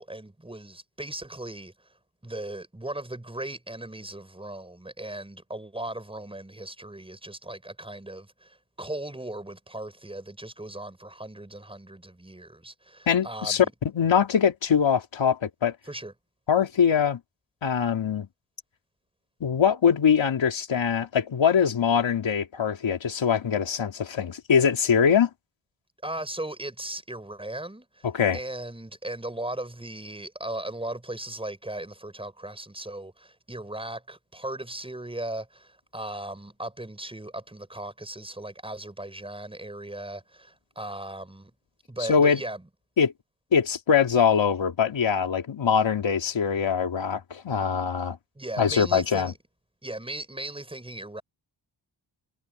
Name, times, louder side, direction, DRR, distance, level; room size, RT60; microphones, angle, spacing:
voice 1, 0.0-1.9 2.2-13.7 15.8-16.1 26.0-28.1 28.3-41.5 41.9-42.6 48.3-49.3 49.8-51.2, right 1 dB, 10° right, 6.7 m, -37 dB
voice 2, 13.1-13.6 13.9-15.7 16.5-17.2 17.6-18.3 19.4-25.3 28.0-28.4 42.1-42.4 43.0-43.1 43.5-48.2 48.6-49.3, left 7 dB, 90° left, 3.2 m, -23 dB
wide cardioid pair, 170°, 44 cm